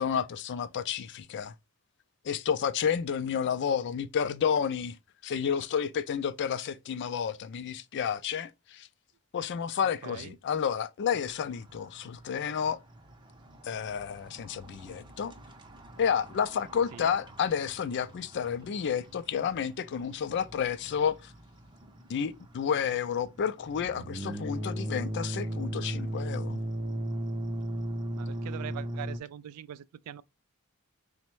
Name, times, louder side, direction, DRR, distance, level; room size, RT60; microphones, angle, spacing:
voice 1, 0.0-1.5 2.2-5.0 5.2-8.9 9.3-12.8 13.6-15.3 16.0-21.3 22.1-26.6, left 7 dB, 55° left, 0.4 m, -30 dB
voice 2, 10.0-10.4 16.9-17.2 28.2-30.2, right 10 dB, 90° right, 0.3 m, -42 dB
sound 1, 11.1-29.2, right 1 dB, 20° right, 0.5 m, -38 dB
4.0 x 2.1 x 4.5 m
head